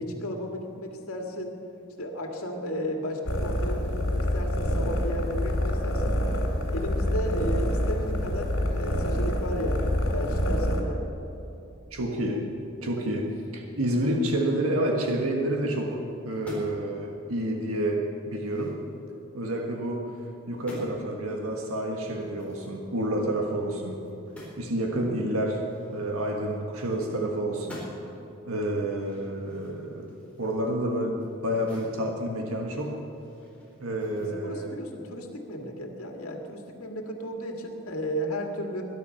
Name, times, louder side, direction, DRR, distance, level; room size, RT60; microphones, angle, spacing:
voice 1, 0.0-1.5 2.0-6.1 6.7-11.0 24.4-24.7 34.2-38.8, equal, 90° left, 2 dB, 2.2 m, -34 dB
sound 1, 3.3-10.8, equal, 70° left, 2.9 m, -27 dB
voice 2, 11.9-12.4 12.8-16.0 16.2-18.8 19.3-20.1 20.5-24.0 24.6-25.6 25.9-27.8 28.5-30.1 30.4-32.9 33.8-34.8, right 1 dB, 80° right, 1 dB, 1.6 m, -29 dB
sound 2, 16.3-16.9 17.3-17.5 17.9-19.6 20.1-20.3 20.5-20.9 22.1-24.7 25.0-25.1 25.4-27.2 27.5-28.2 28.7-32.0 32.3-34.3, equal, 5° left, 4.0 m, -48 dB
21.5 x 11.0 x 5.7 m, 2.9 s
head